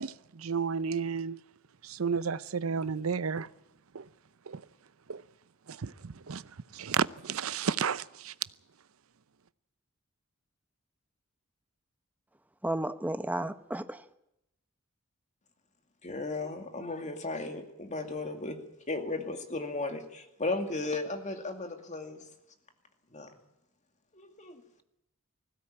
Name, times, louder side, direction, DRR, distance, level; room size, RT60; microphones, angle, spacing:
voice 1, 0.0-1.4 1.8-3.5 3.9-4.1 4.5-4.6 5.1-5.2 5.7-8.3, right 6 dB, 80° right, 0.7 m, -32 dB
voice 2, 12.6-14.0, right 1 dB, 10° right, 0.9 m, -33 dB
voice 3, 16.0-18.6 18.9-22.2 23.1-23.3 24.1-24.6, left 2 dB, 35° left, 2.4 m, -35 dB
20.0 x 16.5 x 8.8 m
head